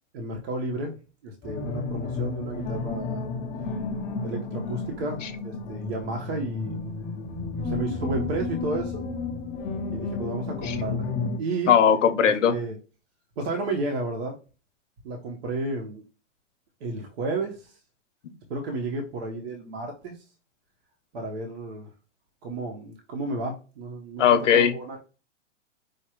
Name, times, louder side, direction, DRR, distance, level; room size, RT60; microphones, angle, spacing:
voice 1, 0.1-1.0 1.2-3.2 4.2-6.7 7.6-9.1 9.9-11.1 11.4-11.7 12.5-12.8 13.4-14.3 15.0-16.0 16.8-17.8 18.5-20.2 21.1-21.9 22.4-25.0, right 2 dB, 55° right, 1 dB, 1.3 m, -32 dB
sound 1, 1.4-11.4, left 3 dB, 15° left, 0.6 m, -32 dB
voice 2, 11.7-12.5 24.2-24.7, left 8 dB, 80° left, 8 dB, 0.9 m, -19 dB
5.0 x 2.8 x 3.0 m, 0.33 s
hypercardioid pair, 135°, 37 cm